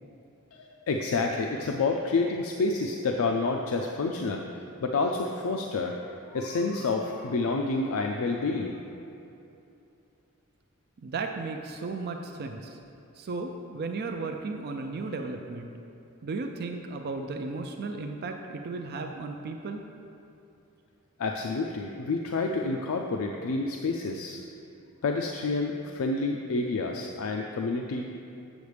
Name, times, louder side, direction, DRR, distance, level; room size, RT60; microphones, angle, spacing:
voice 1, 0.5-6.0 6.3-8.8 21.2-24.4 25.0-28.1, left 3 dB, 70° left, 2 dB, 0.4 m, -29 dB
voice 2, 11.0-12.8 13.1-15.7 16.2-19.8, right 3 dB, 45° right, 4 dB, 0.4 m, -35 dB
8.1 x 7.1 x 3.3 m, 2.8 s
head